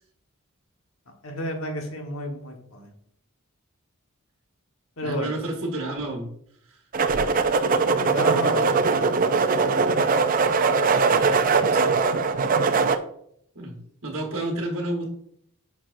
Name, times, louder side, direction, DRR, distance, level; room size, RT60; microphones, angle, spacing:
voice 1, 1.2-2.9 5.0-5.3 8.0-9.3 9.9-10.2, left 1 dB, 65° left, 2 dB, 1.4 m, -32 dB
voice 2, 5.0-6.3 13.5-13.8 14.0-15.1, right 1 dB, 65° right, -1 dB, 1.4 m, -30 dB
sound 1, 6.9-13.0, right 4 dB, 40° right, 0.4 m, -21 dB
8.7 x 6.0 x 2.6 m, 0.69 s
head